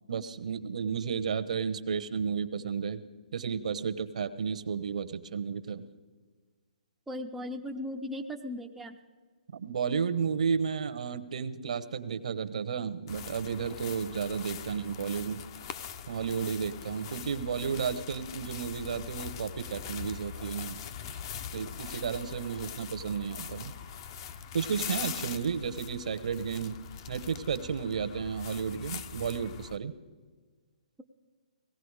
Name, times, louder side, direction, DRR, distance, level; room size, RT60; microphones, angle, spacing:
voice 1, 0.1-3.0 3.3-5.9 9.5-15.4 16.1-20.8 21.5-23.7 24.5-26.8 27.1-29.9, right 6 dB, 65° right, 13 dB, 0.9 m, -32 dB
voice 2, 7.1-9.0, left 1 dB, 5° right, 2 dB, 0.5 m, -37 dB
sound 1, 13.1-29.8, left 8 dB, 35° left, 0.7 m, -42 dB
18.5 x 15.0 x 4.8 m, 1.5 s
hypercardioid pair, 150°, 4 cm